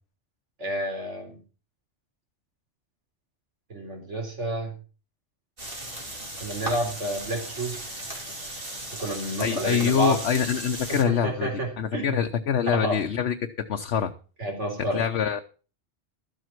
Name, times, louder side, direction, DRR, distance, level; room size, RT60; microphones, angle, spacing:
voice 1, 0.6-1.4 3.7-4.7 6.4-7.8 8.9-10.2 10.9-12.2 12.7-13.0 14.4-15.0, right 1 dB, 80° right, 2 dB, 4.1 m, -30 dB
sound 1, 5.6-11.0, right 1 dB, 50° right, 3.1 m, -36 dB
voice 2, 9.4-11.5 11.8-13.3 13.7-14.1 14.9-15.4, left 8 dB, 70° left, 5 dB, 1.1 m, -25 dB
13.0 x 7.8 x 5.9 m, 0.36 s
omnidirectional pair, 1.2 m